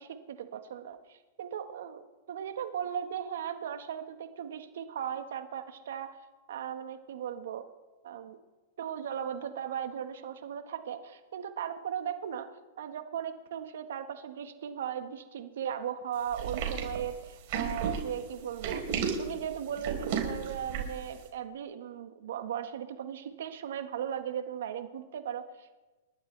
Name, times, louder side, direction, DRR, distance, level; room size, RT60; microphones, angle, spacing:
voice 1, 0.0-6.1 6.5-7.7 8.0-8.4 8.8-12.5 12.8-18.8 19.2-25.8, right 9 dB, 75° right, 8 dB, 1.4 m, -37 dB
sound 1, 16.3-21.1, right 6 dB, 55° right, 4.1 m, -33 dB
29.0 x 12.5 x 3.4 m, 1.2 s
hypercardioid pair, 130°, 0 cm